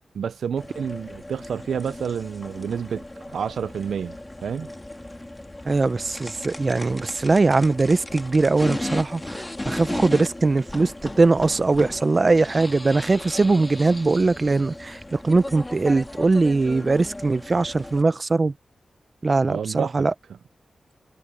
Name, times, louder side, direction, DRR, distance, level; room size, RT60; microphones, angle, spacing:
voice 1, 0.1-4.2 4.4-4.7 19.5-20.1, right 7 dB, 85° right, 0.4 m, -29 dB
sound 1, 0.6-18.0, left 1 dB, 20° left, 1.7 m, -36 dB
voice 2, 5.6-18.5 19.2-20.1, right 3 dB, 45° right, 0.7 m, -21 dB
cardioid pair, 45°, 0 cm